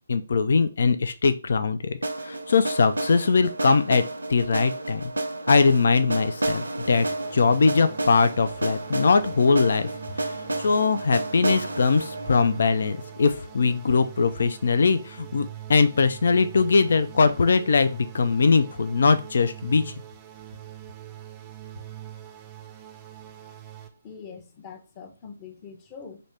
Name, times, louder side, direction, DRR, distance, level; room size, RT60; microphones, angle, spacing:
voice 1, 0.1-2.0 2.2-4.0 4.3-5.1 5.5-7.1 7.3-9.9 10.2-19.9, left 4 dB, 55° left, 0.4 m, -21 dB
sound 1, 2.0-13.9, right 2 dB, 75° right, 0.7 m, -31 dB
sound 2, 6.9-23.9, right 12 dB, 15° right, 0.6 m, -43 dB
voice 2, 24.0-26.2, left 6 dB, 25° left, 0.8 m, -43 dB
5.1 x 2.8 x 3.3 m
figure-of-eight pair, 140°, 0 cm